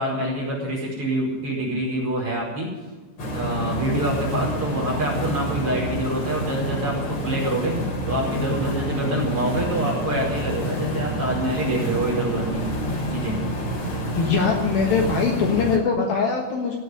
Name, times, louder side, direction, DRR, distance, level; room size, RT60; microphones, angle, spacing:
voice 1, 0.0-2.7 3.3-7.8 8.1-12.7 13.1-13.4, right 1 dB, 30° right, -3 dB, 5.8 m, -26 dB
sound 1, 3.2-15.8, equal, 40° left, 3.7 m, -28 dB
voice 2, 14.2-16.8, left 5 dB, 65° left, 1 dB, 2.8 m, -22 dB
17.0 x 7.9 x 9.6 m, 1.4 s
omnidirectional pair, 5.2 m